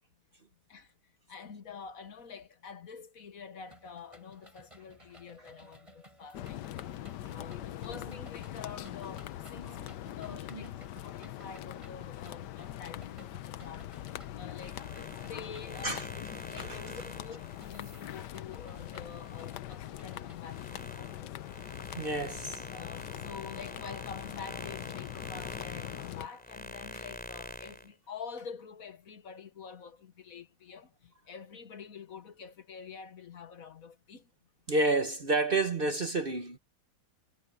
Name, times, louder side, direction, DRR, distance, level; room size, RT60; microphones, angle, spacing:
voice 1, 1.3-6.6 7.3-9.8 10.2-13.9 14.4-14.9 15.2-21.3 22.7-34.3, left 6 dB, 55° left, 1.6 m, -47 dB
sound 1, 3.7-20.6, equal, 15° right, 7.8 m, -58 dB
sound 2, 6.3-26.3, left 13 dB, 85° left, 1.3 m, -42 dB
sound 3, 14.5-19.6 20.0-27.9, equal, 5° left, 3.4 m, -46 dB
voice 2, 22.0-22.6 34.7-36.6, right 2 dB, 40° right, 1.1 m, -30 dB
omnidirectional pair, 1.8 m